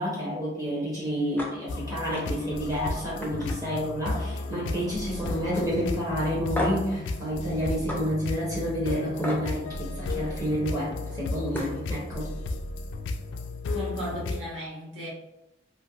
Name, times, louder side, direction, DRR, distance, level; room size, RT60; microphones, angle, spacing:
voice 1, 0.0-12.3, equal, 20° right, -6 dB, 0.7 m, -29 dB
sound 1, 1.4-1.5 1.9-2.2 2.6-2.8 3.2-4.4 4.7-5.1 5.5-5.6 6.5-6.9 7.9-8.0 9.2-9.4 11.1-11.2 11.5-11.8, left 1 dB, 10° left, 0.4 m, -33 dB
sound 2, 1.7-14.4, left 2 dB, 75° left, 0.3 m, -34 dB
voice 2, 13.7-15.1, equal, 90° right, -5 dB, 1.2 m, -35 dB
3.2 x 2.6 x 2.3 m, 0.92 s
head